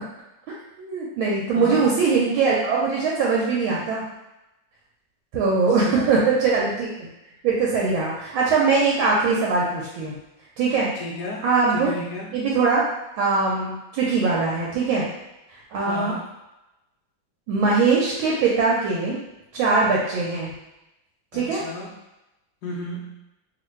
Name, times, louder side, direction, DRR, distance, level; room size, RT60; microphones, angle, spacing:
voice 1, 0.5-4.0 5.3-7.1 7.4-10.1 10.6-10.9 11.4-11.9 12.3-12.9 13.1-15.1 15.5-16.1 17.5-19.2 19.5-20.5 21.3-21.6, right 4 dB, 80° right, -4 dB, 1.4 m, -21 dB
voice 2, 1.5-1.9 5.8-6.3 11.0-12.3 15.7-16.2 21.3-21.9 22.6-23.2, left 1 dB, 80° left, -3 dB, 0.9 m, -34 dB
3.1 x 2.4 x 3.0 m, 0.96 s
omnidirectional pair, 2.2 m